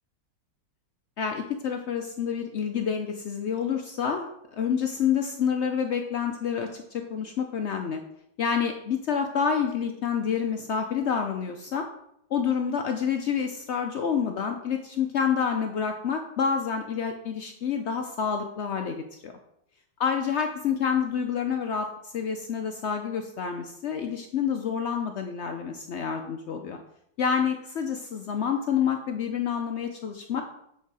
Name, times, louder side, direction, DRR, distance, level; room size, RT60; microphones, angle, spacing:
voice 1, 1.2-8.0 8.4-11.9 12.3-19.3 20.0-26.8 27.2-30.4, left 7 dB, 80° left, 5 dB, 0.6 m, -28 dB
8.2 x 4.6 x 4.7 m, 0.75 s
omnidirectional pair, 1.9 m